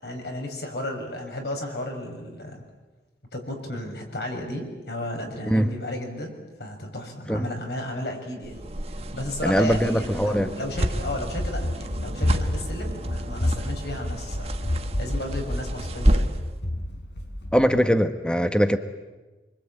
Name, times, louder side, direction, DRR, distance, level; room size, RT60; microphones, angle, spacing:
voice 1, 0.0-2.6 3.3-6.3 6.6-8.6 8.9-14.5 15.0-16.3, left 1 dB, 70° left, 3 dB, 6.6 m, -33 dB
sound 1, 8.4-16.5, right 1 dB, 35° right, 1.4 m, -30 dB
voice 2, 9.4-10.5 17.5-18.8, equal, 5° left, 8 dB, 1.2 m, -21 dB
Run, 10.7-17.7, left 1 dB, 85° left, 4.6 m, -30 dB
27.0 x 25.0 x 8.9 m, 1.2 s
head